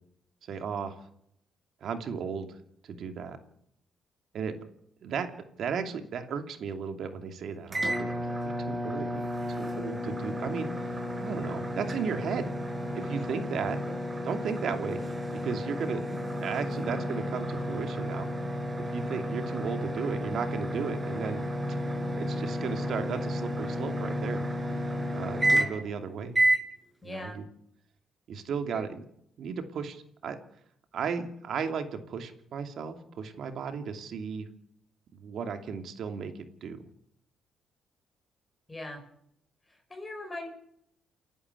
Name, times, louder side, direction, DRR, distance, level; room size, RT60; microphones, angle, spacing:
voice 1, 0.4-1.0 1.8-2.6 2.9-3.4 4.3-4.6 5.0-5.3 5.6-8.1 8.4-9.2 9.5-10.9 11.2-12.5 12.9-13.8 14.2-15.0 15.3-16.0 16.4-18.3 18.9-21.5 22.2-24.4 25.1-26.4 27.0-27.4 28.3-29.0 29.4-30.4 30.9-34.5 35.1-36.3 36.6-36.8, right 6 dB, 65° right, 7 dB, 2.7 m, -35 dB
sound 1, 7.7-25.9 26.3-26.7, equal, 20° right, 6.2 m, -31 dB
voice 2, 27.0-27.4 28.7-28.9 38.7-39.0 39.7-40.5, left 2 dB, 20° left, 3 dB, 6.2 m, -40 dB
29.0 x 11.0 x 8.3 m, 0.73 s
cardioid pair, 90°, 0 cm